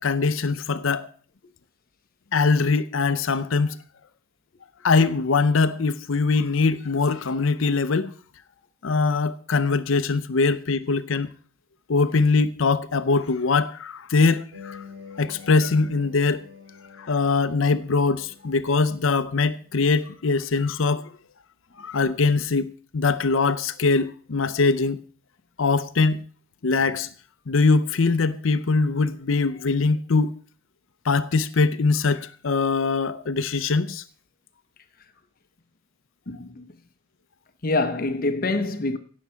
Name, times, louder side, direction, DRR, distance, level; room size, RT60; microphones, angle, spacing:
voice 1, 0.0-1.1 2.3-3.8 4.8-8.1 8.8-11.3 11.9-14.8 15.2-16.4 17.0-21.1 21.8-25.0 25.6-26.2 26.6-27.1 27.5-30.3 31.0-34.0, left 4 dB, 70° left, 0.6 m, -22 dB
sound 1, 14.5-20.0, left 6 dB, 55° right, 3.6 m, -47 dB
voice 2, 36.3-36.6 37.6-39.0, left 2 dB, 45° left, 0.8 m, -25 dB
17.0 x 7.3 x 5.7 m
head